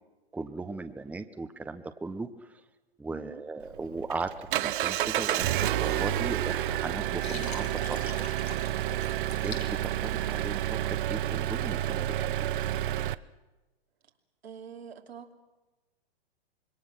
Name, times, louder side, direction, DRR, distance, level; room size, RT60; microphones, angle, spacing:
voice 1, 0.3-2.3 3.0-4.3 4.6-5.5 5.8-8.1 9.4-9.6 10.0-12.3, right 3 dB, 5° right, 9 dB, 0.8 m, -37 dB
voice 2, 3.1-3.4 9.3-9.6 14.4-15.4, right 7 dB, 80° right, 3 dB, 2.8 m, -46 dB
Engine, 3.6-13.1, right 13 dB, 55° right, 0.8 m, -30 dB
Water, 7.2-10.7, left 5 dB, 90° left, 3.7 m, -44 dB
25.5 x 22.0 x 6.3 m, 1.1 s
hypercardioid pair, 120°, 31 cm